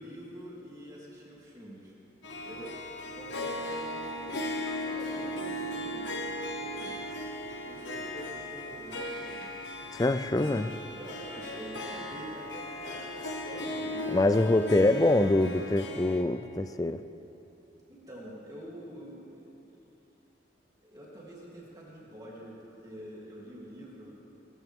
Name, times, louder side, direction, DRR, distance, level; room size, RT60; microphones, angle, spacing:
voice 1, 0.0-1.9 2.4-2.7 3.1-4.5 4.8-6.2 6.6-7.0 7.6-9.7 10.3-14.4 14.8-14.9 17.9-19.6 20.8-24.2, right 1 dB, 20° right, -6 dB, 3.1 m, -46 dB
Harp, 2.2-16.2, left 1 dB, 80° left, 1.4 m, -37 dB
voice 2, 9.9-10.7 14.1-17.0, left 2 dB, 20° left, 12 dB, 0.4 m, -25 dB
21.0 x 14.5 x 3.6 m, 3.0 s
head